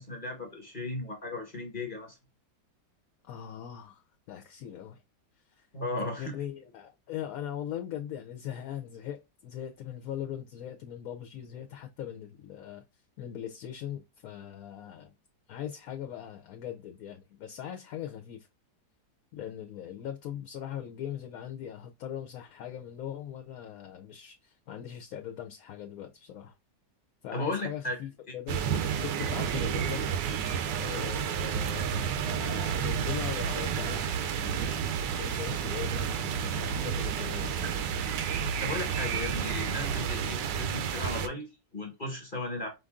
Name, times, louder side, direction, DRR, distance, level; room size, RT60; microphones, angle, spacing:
voice 1, 0.0-2.2 5.7-6.3 27.3-28.0 28.3-28.4 38.6-42.7, left 2 dB, 30° left, 1.3 m, -36 dB
voice 2, 3.2-5.0 5.5-5.7 6.2-12.8 13.2-15.1 15.5-18.5 19.3-26.5 27.2-28.6 28.9-30.0 30.7-37.6, left 10 dB, 65° left, 0.9 m, -40 dB
sound 1, 28.5-41.3, right 7 dB, 85° right, 1.3 m, -31 dB
5.1 x 2.6 x 3.5 m
omnidirectional pair, 1.9 m